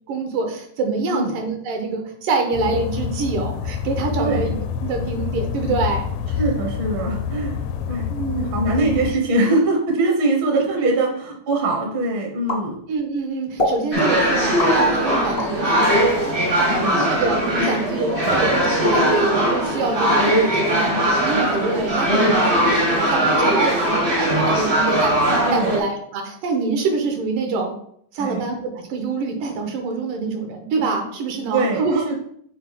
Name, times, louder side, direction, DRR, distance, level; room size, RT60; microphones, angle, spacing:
voice 1, 0.1-4.6 4.8-6.1 8.1-8.9 10.5-10.9 12.9-16.4 17.1-27.7 28.1-32.1, right 3 dB, 80° right, 3 dB, 2.8 m, -25 dB
sound 1, 2.5-9.1, left 8 dB, 85° left, 1.7 m, -27 dB
voice 2, 4.2-4.5 6.4-8.1 8.3-12.8 16.8-17.1 18.2-18.4 25.5-25.8 28.2-28.4 31.5-32.1, right 2 dB, 60° right, 1 dB, 1.3 m, -22 dB
sound 2, 12.5-13.2 13.6-13.8 14.6-15.6 16.1-17.1, left 1 dB, 55° left, 0.6 m, -26 dB
sound 3, 13.9-25.8, equal, 45° right, 0.6 m, -19 dB
7.5 x 4.4 x 4.1 m, 0.67 s
omnidirectional pair, 3.8 m